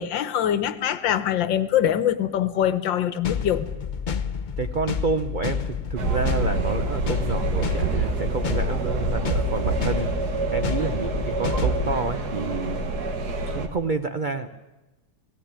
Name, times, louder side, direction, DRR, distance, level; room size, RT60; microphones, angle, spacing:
voice 1, 0.0-3.7, left 10 dB, 80° left, 1.7 m, -23 dB
sound 1, 3.2-12.0, left 7 dB, 60° left, 0.5 m, -29 dB
voice 2, 4.6-10.1 10.5-12.8 13.5-14.5, right 4 dB, 80° right, 0.4 m, -29 dB
sound 2, 6.0-13.7, right 3 dB, 60° right, 2.1 m, -27 dB
17.5 x 17.0 x 8.7 m
omnidirectional pair, 2.0 m